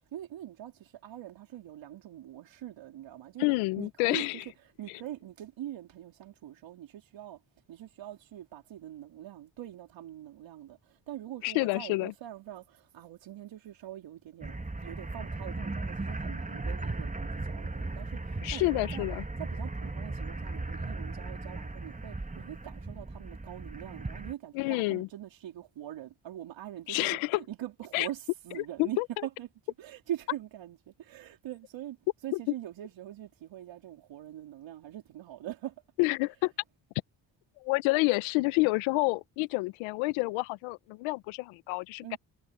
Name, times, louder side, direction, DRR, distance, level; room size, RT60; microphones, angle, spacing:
voice 1, 0.1-3.5 3.8-7.4 7.7-14.6 14.8-19.1 19.4-29.5 29.8-32.0 32.2-35.7 42.0-42.2, right 12 dB, 70° right, 3.8 m, -43 dB
voice 2, 3.4-4.4 11.4-12.1 18.4-19.2 24.5-25.1 26.9-27.4 27.9-28.1 28.8-29.1 32.3-32.4 36.0-36.5 37.6-42.2, left 24 dB, 85° left, 1.0 m, -28 dB
sound 1, 14.4-24.3, right 2 dB, 15° right, 2.2 m, -37 dB
hypercardioid pair, 50°, 46 cm